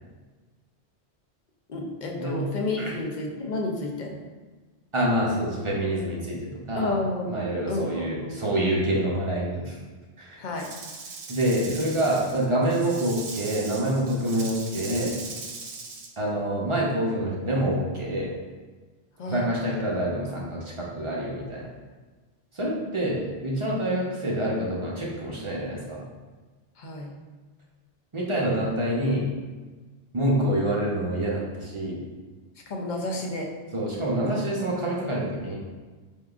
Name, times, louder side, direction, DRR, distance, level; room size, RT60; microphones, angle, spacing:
voice 1, 1.7-4.2 6.8-8.4 10.4-10.7 19.2-19.4 26.8-27.2 32.7-33.5, left 2 dB, 55° left, 1 dB, 0.6 m, -31 dB
voice 2, 4.9-6.9 7.3-9.8 10.2-10.4 11.3-15.2 16.2-18.3 19.2-21.7 22.5-26.0 28.1-29.2 30.1-32.0 33.7-35.6, right 1 dB, 35° right, -4 dB, 0.6 m, -26 dB
Rattle / Rattle (instrument), 10.6-16.1, right 4 dB, 80° right, 0.9 m, -39 dB
4.0 x 3.5 x 2.4 m, 1.3 s
omnidirectional pair, 1.1 m